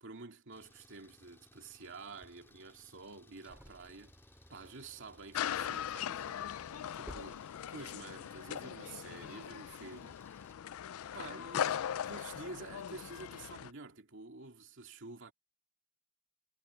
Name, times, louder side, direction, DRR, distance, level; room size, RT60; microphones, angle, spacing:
voice 1, 0.0-4.1 4.5-6.4 7.0-10.2 11.1-15.3, right 3 dB, 60° right, 2.5 m, -49 dB
Engine, 0.5-10.5, left 1 dB, 10° left, 2.2 m, -63 dB
sound 1, 2.0-8.2, equal, 5° right, 3.0 m, -58 dB
Crowded skatepark, 5.3-13.7, left 9 dB, 80° left, 0.4 m, -39 dB
head